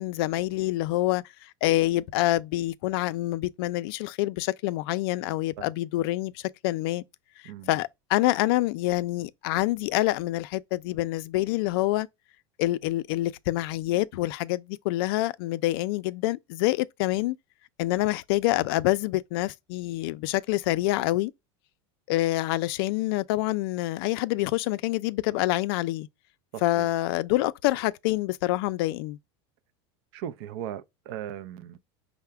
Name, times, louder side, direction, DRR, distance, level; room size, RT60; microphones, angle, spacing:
voice 1, 0.0-7.0 7.7-12.1 12.6-17.4 17.8-21.3 22.1-26.1 26.6-29.2, left 17 dB, 60° left, 0.4 m, -26 dB
voice 2, 26.5-26.9 30.1-31.8, right 10 dB, 65° right, 0.5 m, -38 dB
5.6 x 2.1 x 3.3 m
supercardioid pair, 160°, 14 cm